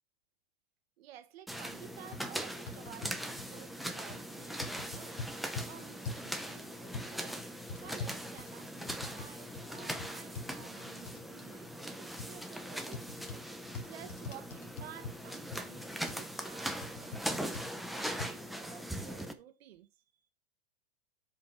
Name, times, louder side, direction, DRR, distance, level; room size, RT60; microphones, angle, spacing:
voice 1, 1.0-5.2 5.7-7.4 7.8-13.1 13.8-19.9, right 11 dB, 70° right, 1.6 m, -53 dB
sound 1, 1.5-19.3, equal, ahead, 0.7 m, -41 dB
sound 2, 1.7-1.8 2.1-2.2 2.7-3.5 4.1-4.3 4.6-5.7 6.0-6.3 6.9-7.1 7.7-9.3 9.5-9.7 10.0-10.5 11.1-11.2 12.2-12.3 12.9-13.4 13.7-15.2 15.5-15.6 16.1-16.2 16.8-17.2 17.5-17.7 18.2-18.3, left 4 dB, 60° left, 2.3 m, -42 dB
7.3 x 5.2 x 4.6 m
hypercardioid pair, 140°, 32 cm